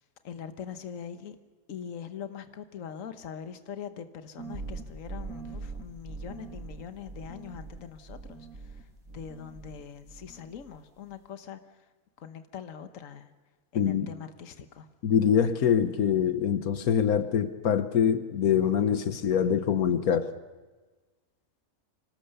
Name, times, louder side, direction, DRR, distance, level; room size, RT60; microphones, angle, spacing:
voice 1, 0.2-1.4 1.7-8.8 9.1-11.6 12.2-13.3 13.7-14.9, left 8 dB, 65° left, 9 dB, 1.5 m, -42 dB
sound 1, 4.4-9.8 10.1-10.8, right 3 dB, 75° right, 3.3 m, -42 dB
voice 2, 13.7-14.1 15.0-20.3, left 8 dB, 85° left, 10 dB, 1.5 m, -24 dB
25.5 x 19.0 x 6.7 m, 1.3 s
omnidirectional pair, 1.5 m